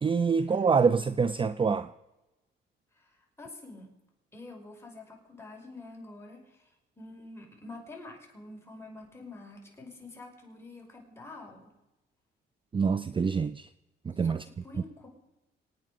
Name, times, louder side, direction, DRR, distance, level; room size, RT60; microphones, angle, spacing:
voice 1, 0.0-1.9 12.7-13.7 14.1-14.5, right 5 dB, 25° right, 0.5 m, -26 dB
voice 2, 3.0-3.9 4.3-6.7 7.0-11.7 14.2-15.1, left 2 dB, 10° left, 5.6 m, -47 dB
26.0 x 9.3 x 5.0 m
cardioid pair, 90°, 20 cm